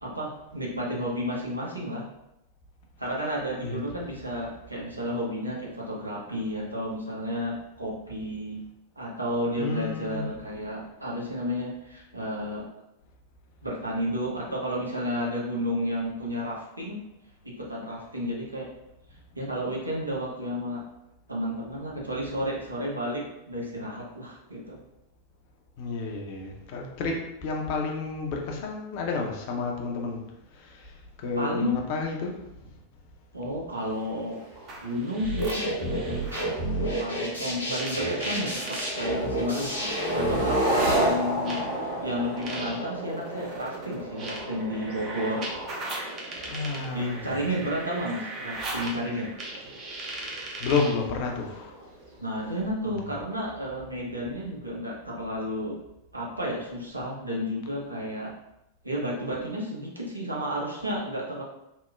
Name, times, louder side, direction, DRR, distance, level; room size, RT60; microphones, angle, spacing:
voice 1, 0.0-2.0 3.0-8.6 9.0-12.6 13.6-17.0 17.4-18.7 19.3-20.8 21.3-24.8 31.4-31.8 33.3-34.4 34.8-36.2 37.0-45.5 46.9-49.3 52.2-55.7 56.1-58.3 58.8-61.4, equal, 85° right, -4 dB, 0.6 m, -32 dB
voice 2, 9.6-10.3 25.8-30.2 30.5-32.7 46.4-47.5 50.6-51.8 52.9-53.1, left 4 dB, 45° left, 1 dB, 0.5 m, -31 dB
sound 1, 33.8-52.6, right 1 dB, 55° right, 1.4 m, -35 dB
sound 2, 34.5-36.6 37.7-39.0 40.1-40.2 41.4-51.0, right 2 dB, 35° right, 0.6 m, -39 dB
sound 3, 35.2-40.7, right 1 dB, 80° left, 0.8 m, -29 dB
2.9 x 2.0 x 2.2 m, 0.89 s
figure-of-eight pair, 90°, 0 cm